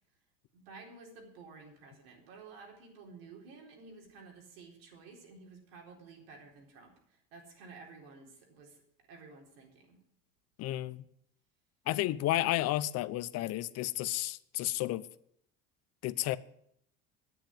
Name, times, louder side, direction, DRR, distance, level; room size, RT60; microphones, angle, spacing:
voice 1, 0.5-8.8 9.1-10.0, right 4 dB, 90° right, 4.2 m, -52 dB
voice 2, 10.6-11.1 11.9-15.1 16.0-16.4, left 15 dB, 60° left, 0.8 m, -32 dB
9.8 x 9.1 x 8.8 m
supercardioid pair, 100°, 29 cm